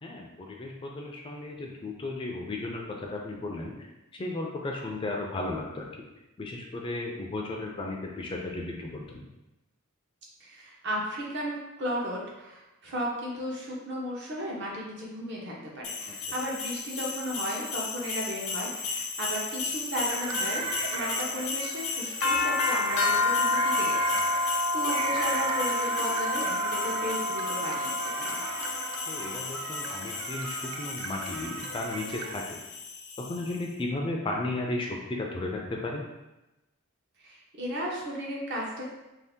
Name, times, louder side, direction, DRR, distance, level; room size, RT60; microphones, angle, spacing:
voice 1, 0.0-3.7 4.1-6.1 6.4-9.3 16.1-16.2 24.8-24.9 29.1-32.6 33.2-36.0, left 2 dB, 25° left, 0 dB, 0.3 m, -34 dB
voice 2, 10.4-28.4 37.2-38.8, equal, 55° right, -3 dB, 0.7 m, -35 dB
sound 1, 15.8-33.6, left 3 dB, 85° left, 0.5 m, -31 dB
sound 2, 20.1-32.4, right 5 dB, 85° right, 0.3 m, -37 dB
2.7 x 2.4 x 3.5 m, 1.0 s
head